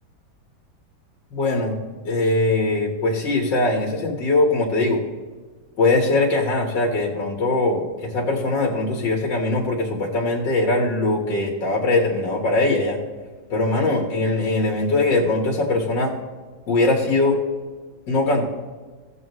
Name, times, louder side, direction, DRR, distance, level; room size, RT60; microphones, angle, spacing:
voice 1, 1.3-1.8 2.1-5.0 5.8-13.0 13.5-16.1 16.7-17.4 18.1-18.4, left 2 dB, 65° left, -2 dB, 2.1 m, -21 dB
16.5 x 7.0 x 3.1 m, 1.4 s
omnidirectional pair, 2.1 m